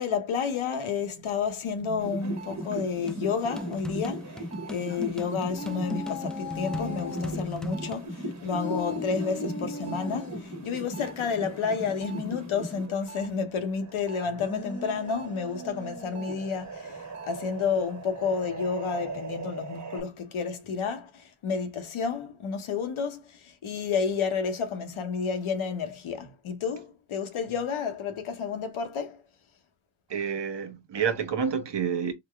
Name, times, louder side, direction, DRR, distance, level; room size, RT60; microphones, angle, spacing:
voice 1, 0.0-4.4 4.7-29.2, left 6 dB, 80° left, 0.9 m, -31 dB
sound 1, 2.0-13.3 13.6-20.0, right 2 dB, 35° right, 1.3 m, -38 dB
sound 2, 3.1-8.1, left 2 dB, ahead, 0.5 m, -38 dB
sound 3, 5.5-7.5 8.5-10.4 14.2-16.5, left 3 dB, 25° left, 1.0 m, -39 dB
voice 2, 30.1-32.1, right 7 dB, 60° right, 1.0 m, -29 dB
3.8 x 2.1 x 3.3 m
cardioid pair, 50°, 48 cm